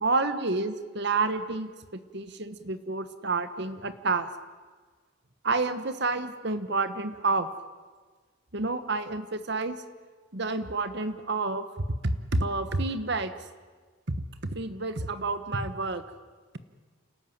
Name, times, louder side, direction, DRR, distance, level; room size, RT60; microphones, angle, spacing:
voice 1, 0.0-4.3 5.4-7.5 8.5-9.8 10.3-11.7 12.0-13.3 14.4-16.0, right 3 dB, 55° right, 11 dB, 1.3 m, -29 dB
29.0 x 13.5 x 9.4 m, 1.4 s
head